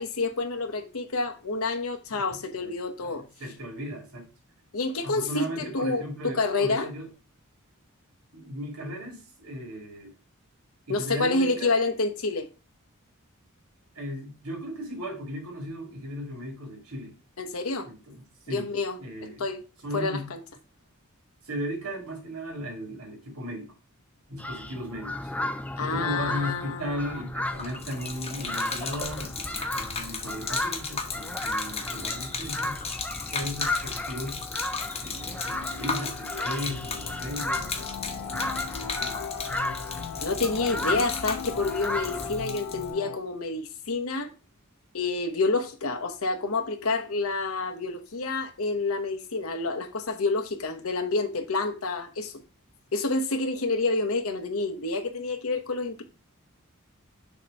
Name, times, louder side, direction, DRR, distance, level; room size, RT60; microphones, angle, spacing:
voice 1, 0.0-3.2 4.7-6.9 10.9-12.5 17.4-17.9 18.5-19.0 19.4-19.6 19.9-20.4 25.8-27.1 40.2-44.3 44.9-52.3 52.9-56.0, left 3 dB, 70° left, 1.0 m, -28 dB
voice 2, 2.1-2.7 3.0-4.3 5.0-7.1 8.3-10.1 10.9-11.8 13.9-17.1 17.8-18.7 19.0-19.5 19.8-20.3 21.4-23.7 24.3-25.3 25.8-32.8 33.3-34.4 35.0-39.2 40.5-40.9, equal, 85° right, 2.4 m, -37 dB
sound 1, 24.4-42.4, left 1 dB, 5° left, 0.4 m, -34 dB
Gurgling / Liquid, 27.4-42.9, left 5 dB, 30° left, 1.0 m, -36 dB
sound 2, 34.2-43.2, left 8 dB, 90° left, 0.4 m, -40 dB
6.6 x 3.0 x 5.2 m
head